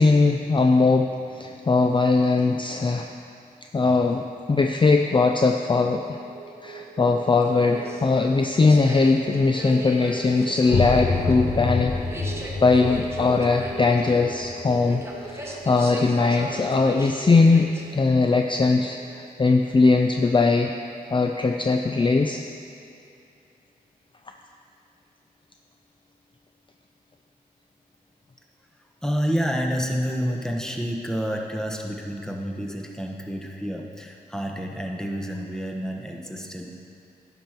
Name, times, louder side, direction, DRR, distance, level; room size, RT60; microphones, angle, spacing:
voice 1, 0.0-3.1 3.7-6.2 6.6-11.9 12.6-20.7 21.1-22.4, left 3 dB, 30° left, 4 dB, 0.4 m, -20 dB
sound 1, 5.8-20.2, right 6 dB, 65° right, 0.7 m, -42 dB
sound 2, 7.4-18.1, right 1 dB, 15° right, 1.2 m, -39 dB
sound 3, 10.7-16.2, left 3 dB, 80° left, 1.0 m, -29 dB
voice 2, 29.0-36.7, equal, 5° left, 1 dB, 1.1 m, -29 dB
10.5 x 6.0 x 4.5 m, 2.6 s
cardioid pair, 55°, 16 cm